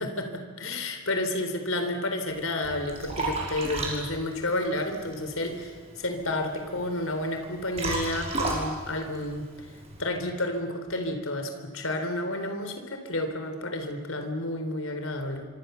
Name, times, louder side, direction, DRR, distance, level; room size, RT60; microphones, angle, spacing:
voice 1, 0.0-5.7 6.0-9.5 10.0-15.5, left 1 dB, 80° left, 6 dB, 3.9 m, -31 dB
Liquid, 2.3-10.0, right 2 dB, 30° right, 5.7 m, -35 dB
26.0 x 25.5 x 7.0 m, 1.4 s
head